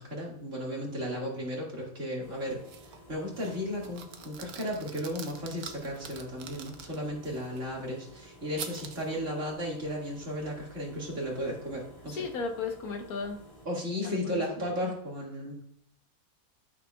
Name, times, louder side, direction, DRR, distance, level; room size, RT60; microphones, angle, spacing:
voice 1, 0.0-12.2 13.7-15.8, equal, 55° right, -3 dB, 2.5 m, -35 dB
sound 1, 2.2-13.7, equal, 20° left, 1.9 m, -53 dB
sound 2, 2.6-3.0 3.4-7.6 8.6-9.2, right 7 dB, 70° right, 1.2 m, -45 dB
voice 2, 12.1-13.4 14.0-14.9, left 4 dB, 75° left, 4 dB, 1.5 m, -36 dB
12.0 x 6.5 x 2.3 m, 0.69 s
omnidirectional pair, 1.6 m